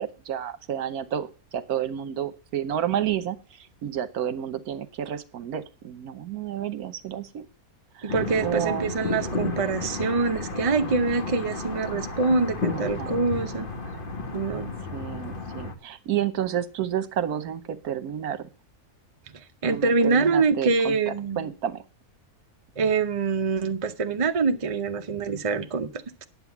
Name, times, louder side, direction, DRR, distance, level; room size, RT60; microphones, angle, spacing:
voice 1, 0.0-7.5 8.0-8.1 8.4-9.0 10.8-11.0 12.7-13.2 14.9-18.5 19.6-21.8, right 10 dB, 75° right, 1.4 m, -30 dB
voice 2, 8.0-13.7 14.3-14.7 19.6-21.5 22.8-25.9, right 4 dB, 30° right, 0.7 m, -25 dB
sound 1, 8.1-15.8, left 3 dB, 35° left, 1.5 m, -33 dB
9.9 x 7.6 x 7.2 m
omnidirectional pair, 1.6 m